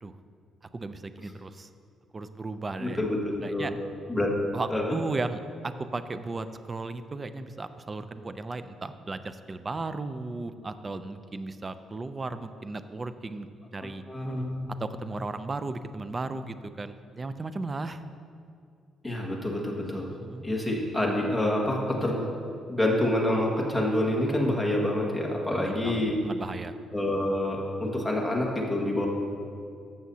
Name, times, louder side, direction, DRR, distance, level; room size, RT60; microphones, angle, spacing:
voice 1, 0.7-1.7 2.1-3.0 3.4-3.7 4.5-14.0 14.8-18.0 20.1-20.5 25.5-26.7, right 3 dB, 30° right, 11 dB, 0.5 m, -35 dB
voice 2, 2.8-3.8 4.1-4.3 4.7-5.0 14.1-14.7 19.0-20.1 20.4-22.3 22.7-26.2 26.9-29.1, left 1 dB, 5° left, -3 dB, 1.7 m, -27 dB
14.0 x 7.0 x 2.8 m, 2.3 s
cardioid pair, 90°, 0 cm